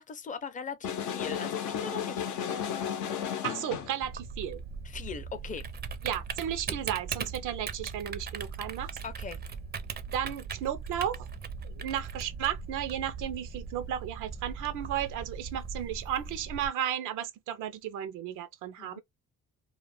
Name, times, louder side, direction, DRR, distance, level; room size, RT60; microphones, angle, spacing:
voice 1, 0.0-2.7 4.8-5.7 9.0-9.4 18.8-19.0, left 5 dB, 25° left, 0.5 m, -40 dB
sound 1, 0.8-4.0, left 8 dB, 80° left, 0.6 m, -33 dB
voice 2, 3.4-4.6 6.0-8.9 10.1-11.3 11.6-19.0, right 10 dB, 85° right, 0.6 m, -34 dB
Typing, 4.0-16.7, right 5 dB, 35° right, 0.4 m, -39 dB
2.4 x 2.1 x 3.1 m
cardioid pair, 90°, 30 cm